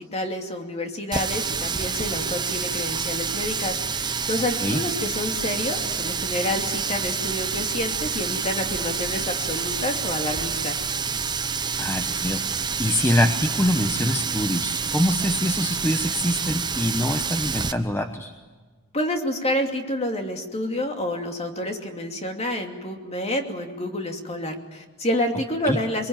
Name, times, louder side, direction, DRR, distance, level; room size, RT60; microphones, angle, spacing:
voice 1, 0.0-10.8 18.9-26.1, left 1 dB, 30° left, 4 dB, 2.8 m, -28 dB
Water tap faucet, 1.1-17.7, right 5 dB, 20° right, 0.8 m, -28 dB
voice 2, 11.8-18.3 25.6-25.8, left 1 dB, 10° left, 6 dB, 1.0 m, -24 dB
24.0 x 23.0 x 9.0 m, 1.4 s
head